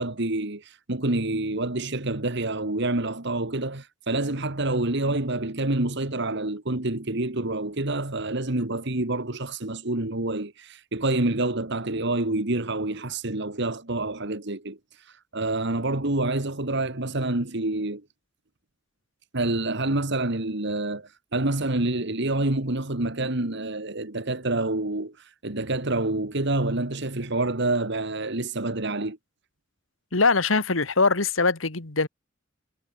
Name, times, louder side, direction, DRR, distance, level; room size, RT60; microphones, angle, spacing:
voice 1, 0.0-14.8 15.3-18.0 19.3-25.2 25.4-29.2, right 2 dB, 60° right, 2.2 m, -27 dB
voice 2, 30.1-32.1, left 4 dB, 75° left, 2.0 m, -22 dB
head